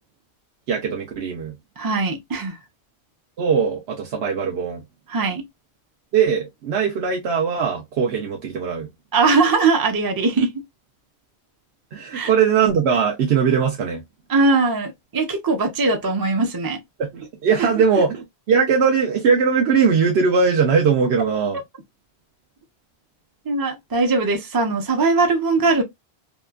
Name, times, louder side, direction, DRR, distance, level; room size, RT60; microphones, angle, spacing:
voice 1, 0.7-1.5 3.4-4.8 6.1-8.9 11.9-14.0 17.0-21.6, right 6 dB, 85° right, 0.9 m, -20 dB
voice 2, 1.8-2.6 5.1-5.4 9.1-10.5 12.1-12.3 14.3-16.8 17.6-17.7 23.5-25.8, right 3 dB, 35° right, 0.4 m, -20 dB
2.8 x 2.4 x 2.2 m
omnidirectional pair, 1.1 m